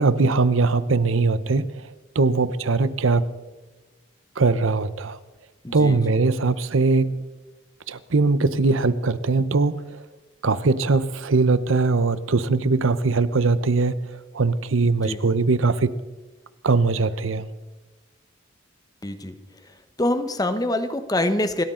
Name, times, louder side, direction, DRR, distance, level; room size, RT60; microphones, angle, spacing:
voice 1, 0.0-3.3 4.4-5.2 5.7-7.3 7.9-10.0 10.4-16.0 16.6-17.5, right 3 dB, 75° right, 14 dB, 0.8 m, -21 dB
voice 2, 5.6-6.0 14.8-15.2 19.0-19.4 20.0-21.6, left 1 dB, 20° left, 9 dB, 1.0 m, -25 dB
28.5 x 13.0 x 3.8 m, 1.2 s
head